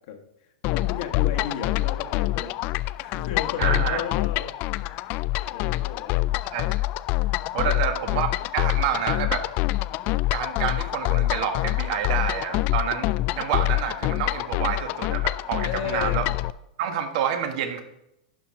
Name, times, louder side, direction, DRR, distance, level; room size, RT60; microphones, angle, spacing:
sound 1, 0.6-16.5, left 18 dB, 40° left, 0.3 m, -26 dB
voice 1, 0.7-2.5 3.0-4.5 4.9-6.3 7.1-7.3 7.5-8.0 15.6-16.2, left 8 dB, 60° left, 4 dB, 1.4 m, -34 dB
voice 2, 3.6-4.0 6.5-6.9 7.5-9.4 10.3-16.3 16.8-17.8, right 8 dB, 55° right, 7 dB, 1.5 m, -28 dB
11.0 x 4.6 x 5.7 m, 0.84 s
supercardioid pair, 140°, 5 cm